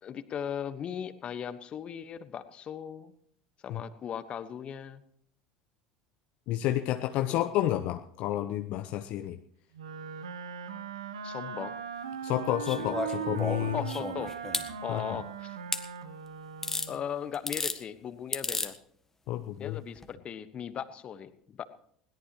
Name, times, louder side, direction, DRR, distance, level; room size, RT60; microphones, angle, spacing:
voice 1, 0.0-3.1 3.6-5.0 7.3-7.5 11.2-11.7 13.7-14.3 14.8-15.6 16.9-18.7 19.6-21.6, left 8 dB, 40° left, 12 dB, 1.3 m, -38 dB
voice 2, 6.5-9.4 12.2-13.8 14.9-15.0 19.3-19.8, left 13 dB, 60° left, 8 dB, 0.7 m, -30 dB
Wind instrument woodwind instrument, 9.7-17.1, right 6 dB, 85° right, 1.1 m, -39 dB
sound 1, 12.6-14.7 15.7-15.8 16.6-16.9 17.3-17.8 18.3-18.7 20.0-20.1, left 3 dB, 15° left, 1.6 m, -33 dB
21.0 x 17.5 x 3.0 m, 0.64 s
hypercardioid pair, 75°, 3 cm